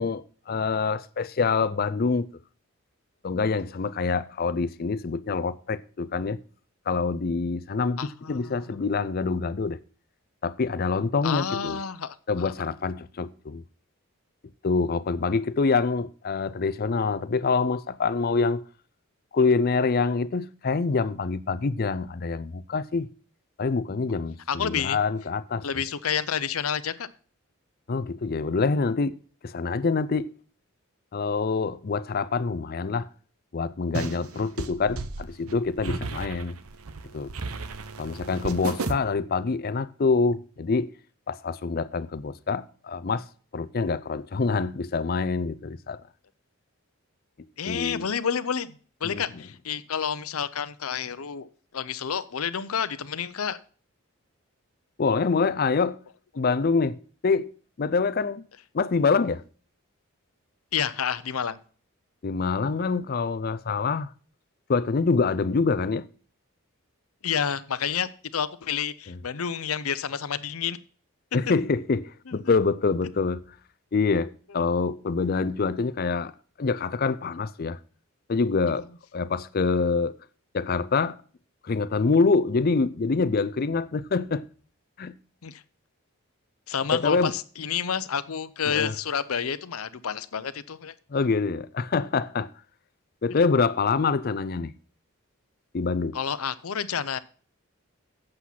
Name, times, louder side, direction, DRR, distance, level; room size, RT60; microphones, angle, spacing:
voice 1, 0.0-2.3 3.2-6.4 6.9-9.8 10.4-11.8 12.3-13.6 14.6-18.6 19.3-23.1 23.6-25.6 27.9-29.1 29.4-30.3 31.1-33.1 33.5-36.6 37.1-37.3 38.0-40.9 41.3-43.2 43.5-46.0 47.6-48.1 49.0-49.2 55.0-56.0 56.4-57.0 57.2-57.5 57.8-58.4 58.7-59.4 62.2-64.1 64.7-66.1 69.1-69.2 71.3-73.4 73.9-76.3 76.6-77.8 78.3-78.9 79.1-80.1 80.5-81.2 81.6-84.5 85.0-85.2 86.9-87.3 88.7-88.9 91.1-92.5 93.2-94.7 95.7-96.2, left 4 dB, 45° left, 0.5 m, -25 dB
voice 2, 8.0-8.8 11.2-12.5 24.5-25.0 25.6-27.1 47.6-51.5 51.7-53.6 60.7-61.6 67.2-70.8 72.4-72.5 85.4-85.6 86.7-90.9 93.3-93.4 96.1-97.2, left 7 dB, 85° left, 0.7 m, -29 dB
sound 1, 33.9-38.9, right 3 dB, 90° right, 0.9 m, -34 dB
8.3 x 7.7 x 5.8 m
head